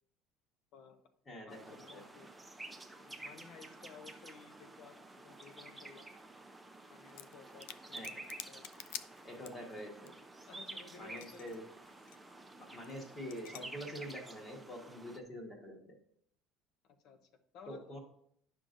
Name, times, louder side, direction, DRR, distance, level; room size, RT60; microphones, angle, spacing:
voice 1, 0.7-1.1 1.4-2.3 3.0-6.1 6.9-8.0 8.5-8.6 10.5-11.6 16.8-18.0, left 6 dB, 50° left, 9 dB, 0.7 m, -56 dB
voice 2, 1.3-2.0 7.9-8.2 9.2-10.1 11.0-11.6 12.6-15.9 17.7-18.0, equal, 20° left, 1 dB, 1.4 m, -46 dB
sound 1, 1.5-15.2, right 2 dB, 5° right, 0.5 m, -51 dB
sound 2, 7.1-7.4 7.6-9.8 10.1-10.2 10.3-11.6 11.8-12.2 12.8-13.0 13.3-13.6, left 12 dB, 85° left, 0.4 m, -47 dB
9.8 x 5.9 x 2.6 m, 0.67 s
cardioid pair, 155°, 0 cm